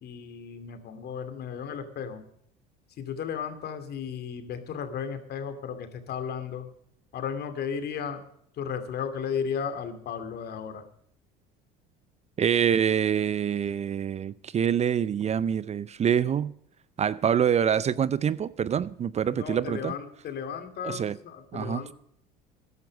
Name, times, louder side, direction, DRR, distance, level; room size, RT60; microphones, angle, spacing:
voice 1, 0.0-2.2 3.0-6.7 7.1-8.2 8.5-10.8 19.3-21.9, left 7 dB, 55° left, 2.6 m, -34 dB
voice 2, 12.4-16.5 17.0-19.9 20.8-21.1 21.5-21.8, right 8 dB, 35° right, 0.6 m, -25 dB
14.0 x 11.0 x 5.2 m
hypercardioid pair, 80°, 20 cm